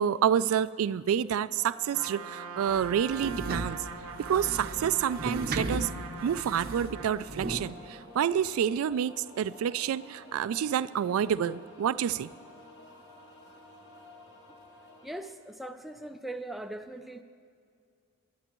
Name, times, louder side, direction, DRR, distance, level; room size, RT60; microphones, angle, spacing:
voice 1, 0.0-3.8 4.2-5.9 6.2-12.3, right 8 dB, 75° right, 16 dB, 0.3 m, -28 dB
sound 1, 1.6-15.1, left 1 dB, 50° left, 2.5 m, -51 dB
Trumpet, 1.9-7.2, right 5 dB, 90° right, 0.8 m, -42 dB
sound 2, 2.7-7.7, right 2 dB, 45° right, 0.7 m, -36 dB
voice 2, 15.0-17.2, right 1 dB, ahead, 6 dB, 0.4 m, -40 dB
22.0 x 12.0 x 3.0 m, 2.2 s
head